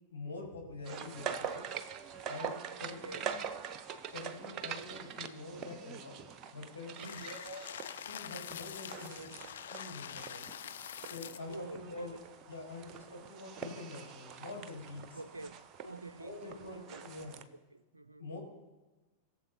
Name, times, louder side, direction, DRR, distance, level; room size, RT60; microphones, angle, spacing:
voice 1, 0.1-1.6 2.3-3.4 4.1-6.2 6.5-7.6 8.0-9.3 9.7-10.4 11.0-12.1 12.5-15.2 16.2-17.4 18.2-18.4, left 2 dB, 80° left, 4.2 m, -46 dB
sound 1, 0.9-17.4, right 7 dB, 35° right, 0.7 m, -44 dB
sound 2, 7.0-11.6, left 10 dB, 60° left, 0.4 m, -45 dB
voice 2, 7.0-7.4 11.5-12.2 12.7-12.8 14.5-14.7 15.1-17.0 17.5-18.3, right 2 dB, 80° right, 0.3 m, -48 dB
21.0 x 7.2 x 2.8 m
figure-of-eight pair, 90°, 0 cm